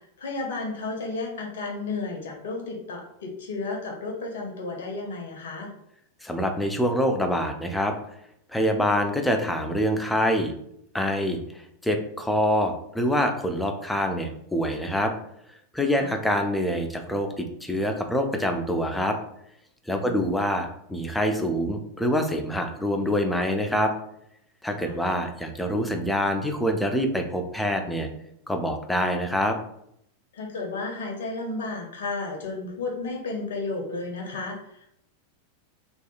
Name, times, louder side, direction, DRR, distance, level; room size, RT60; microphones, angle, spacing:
voice 1, 0.2-5.7 15.9-16.1 20.0-20.4 24.8-24.9 30.3-34.9, left 3 dB, 60° left, 0 dB, 0.5 m, -33 dB
voice 2, 6.2-7.9 8.5-10.5 10.9-11.4 11.8-15.1 15.7-19.2 19.9-23.9 24.6-28.1 28.5-29.6, equal, 5° left, 4 dB, 0.3 m, -25 dB
2.7 x 2.3 x 2.4 m, 0.74 s
figure-of-eight pair, 90°, 0 cm